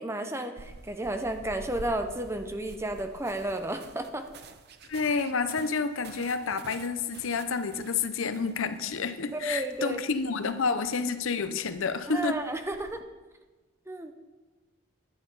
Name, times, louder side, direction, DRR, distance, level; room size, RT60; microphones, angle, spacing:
voice 1, 0.0-4.2 9.3-10.0 12.1-13.0 13.9-14.1, right 1 dB, 10° right, 6 dB, 0.6 m, -32 dB
sound 1, 0.6-13.0, right 4 dB, 50° right, 0.6 m, -50 dB
voice 2, 4.9-12.4, left 5 dB, 65° left, 11 dB, 0.6 m, -29 dB
11.0 x 8.7 x 5.4 m, 1.2 s
head